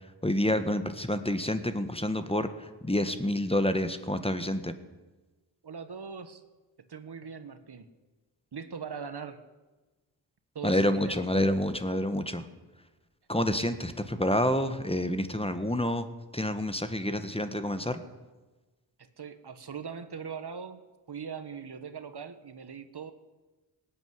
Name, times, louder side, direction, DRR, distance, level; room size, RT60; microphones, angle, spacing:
voice 1, 0.2-4.8 10.6-12.5 13.3-16.1 16.3-18.0, left 1 dB, 15° left, 10 dB, 1.5 m, -28 dB
voice 2, 5.6-6.4 6.9-7.9 8.5-9.4 10.5-11.2 19.0-20.8 21.1-23.1, right 6 dB, 60° right, 10 dB, 1.5 m, -40 dB
18.0 x 8.4 x 9.7 m, 1.2 s
cardioid pair, 40°, 45 cm